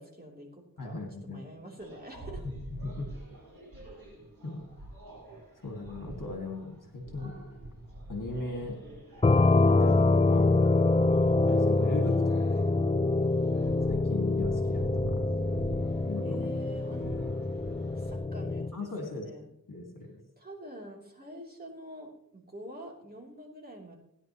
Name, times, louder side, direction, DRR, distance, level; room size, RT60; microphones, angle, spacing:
voice 1, 0.0-2.5 16.2-17.3 17.9-19.5 20.4-24.0, right 1 dB, 25° right, -2 dB, 3.4 m, -47 dB
voice 2, 0.8-1.5 2.8-3.1 4.4-4.7 5.6-7.4 8.1-8.8 9.5-10.5 11.4-13.0 13.9-15.2 16.1-16.6 18.7-19.3 19.7-20.1, left 2 dB, 65° left, 1 dB, 2.1 m, -38 dB
sound 1, 1.8-18.2, right 1 dB, 75° right, 4.9 m, -45 dB
sound 2, 9.2-18.7, left 3 dB, 20° left, 0.4 m, -25 dB
17.0 x 10.5 x 3.1 m, 0.74 s
wide cardioid pair, 60°, 35 cm